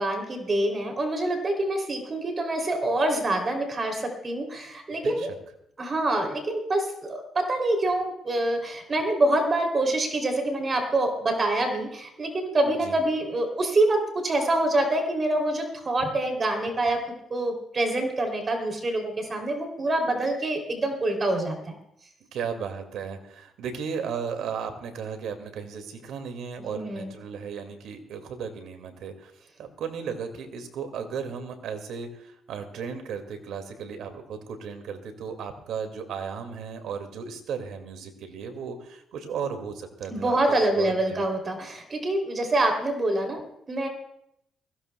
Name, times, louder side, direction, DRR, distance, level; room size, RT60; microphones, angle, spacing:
voice 1, 0.0-5.3 5.8-21.8 26.6-27.1 40.1-43.9, right 1 dB, 35° right, 3 dB, 3.1 m, -26 dB
voice 2, 4.9-5.4 12.8-13.0 22.3-29.3 29.6-41.3, right 6 dB, 80° right, 6 dB, 2.2 m, -35 dB
21.5 x 16.0 x 2.3 m, 0.75 s
cardioid pair, 90°, 0 cm